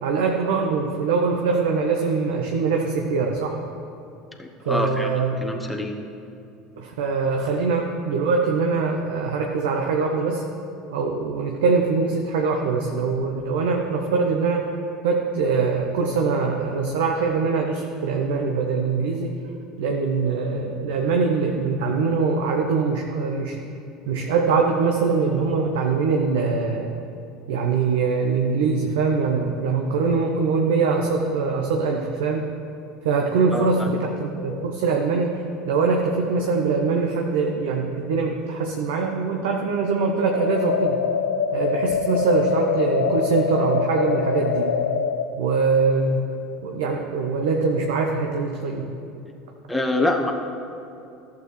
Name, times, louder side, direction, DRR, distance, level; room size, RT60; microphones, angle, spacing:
voice 1, 0.0-3.6 4.7-5.4 6.8-10.4 10.9-14.7 15.0-19.4 19.8-23.6 24.1-26.9 27.5-32.4 33.0-41.0 41.5-44.7 45.4-46.2 46.6-48.9, right 4 dB, 70° right, 2 dB, 0.7 m, -23 dB
voice 2, 4.4-5.1 5.4-5.9 33.5-33.9 49.7-50.3, left 2 dB, 5° left, 1 dB, 0.9 m, -25 dB
sound 1, 40.2-45.2, left 6 dB, 85° left, 0.4 m, -24 dB
14.0 x 7.0 x 3.2 m, 2.6 s
hypercardioid pair, 75°, 0 cm